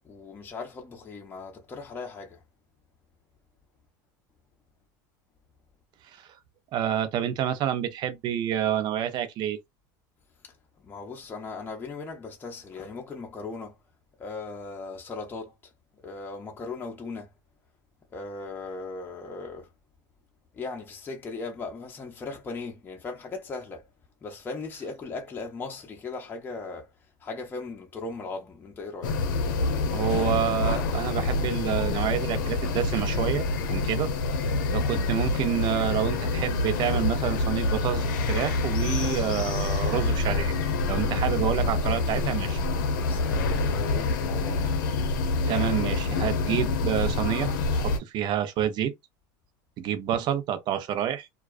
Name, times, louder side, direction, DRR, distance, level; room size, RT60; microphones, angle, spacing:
voice 1, 0.0-2.4 10.8-13.8 14.2-15.5 16.0-17.3 18.1-19.7 20.5-23.9 24.2-26.9 27.2-29.2 42.9-44.7, left 3 dB, 20° left, 0.7 m, -38 dB
voice 2, 6.7-9.6 29.9-34.1 34.7-40.5 40.9-42.6 45.5-47.5 47.8-48.9 49.8-51.3, right 10 dB, 45° right, 0.6 m, -28 dB
sound 1, 29.0-48.0, left 3 dB, 85° left, 0.7 m, -27 dB
2.3 x 2.3 x 2.4 m
supercardioid pair, 115°, 10 cm